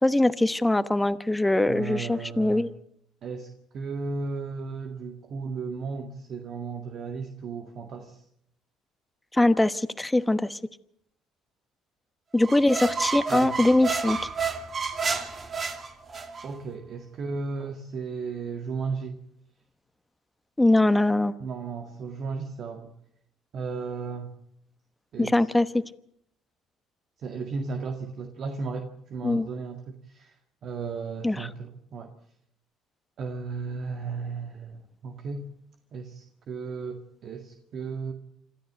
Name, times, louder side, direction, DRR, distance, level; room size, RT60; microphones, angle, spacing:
voice 1, 0.0-2.7 9.3-10.6 12.3-14.2 20.6-21.3 25.2-25.8 29.2-29.5 31.2-31.5, left 2 dB, 10° left, 13 dB, 1.0 m, -22 dB
voice 2, 1.7-2.7 3.2-8.2 13.3-13.5 16.4-19.2 21.4-22.9 23.5-24.3 25.1-25.5 27.2-30.3 30.6-32.1 33.2-35.5 35.9-38.1, right 4 dB, 55° right, 5 dB, 1.9 m, -35 dB
sound 1, 12.4-16.5, right 5 dB, 35° right, 2.4 m, -30 dB
27.0 x 13.5 x 7.7 m, 0.72 s
supercardioid pair, 80°, 0 cm